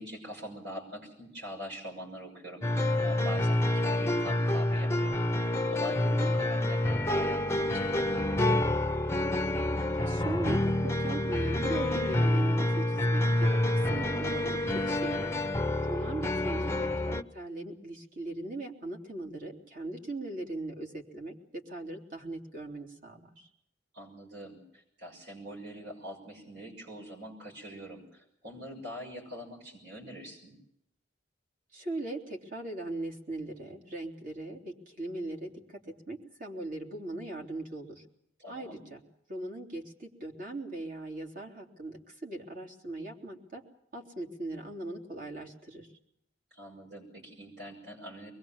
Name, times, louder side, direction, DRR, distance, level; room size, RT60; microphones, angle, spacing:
voice 1, 0.0-8.5 16.2-16.6 23.9-30.6 38.4-38.8 46.5-48.3, equal, 65° right, 0 dB, 6.4 m, -44 dB
sound 1, 2.6-17.2, left 1 dB, 15° left, 0.8 m, -28 dB
voice 2, 9.9-15.5 15.9-23.5 31.7-35.8 36.1-38.0 38.5-39.0 39.3-43.6 43.9-45.9, right 2 dB, 50° right, 2 dB, 3.4 m, -39 dB
24.5 x 21.0 x 7.3 m, 0.75 s
head